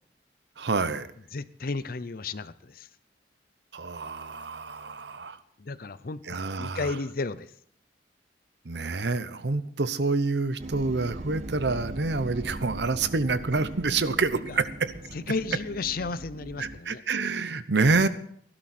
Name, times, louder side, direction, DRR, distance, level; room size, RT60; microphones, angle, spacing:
voice 1, 0.6-1.1 3.7-5.4 6.3-6.9 8.6-14.9 16.6-18.1, right 3 dB, 70° right, 0.9 m, -27 dB
voice 2, 1.3-2.9 5.6-6.2 6.6-7.5 14.5-14.6 15.1-17.0, left 3 dB, 55° left, 0.6 m, -33 dB
sound 1, 10.6-16.8, right 2 dB, 40° right, 0.8 m, -40 dB
17.0 x 12.0 x 4.3 m
head